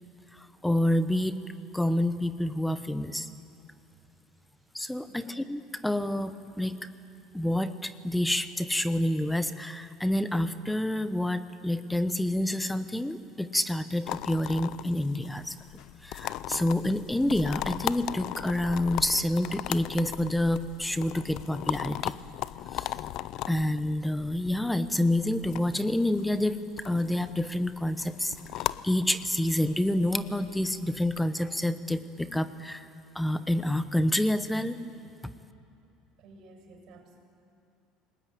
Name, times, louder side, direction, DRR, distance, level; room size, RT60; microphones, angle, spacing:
voice 1, 0.3-1.4 1.7-3.3 4.7-6.8 7.3-15.5 16.0-22.1 22.7-22.9 23.5-26.6 26.8-32.8 33.1-34.8 35.2-35.3, left 1 dB, 5° left, 12 dB, 0.9 m, -28 dB
voice 2, 5.1-5.5 36.2-37.2, right 2 dB, 50° right, 3 dB, 7.1 m, -53 dB
sound 1, 14.1-31.2, left 14 dB, 55° left, 0.5 m, -38 dB
28.5 x 19.5 x 9.5 m, 2.7 s
cardioid pair, 150°, 0 cm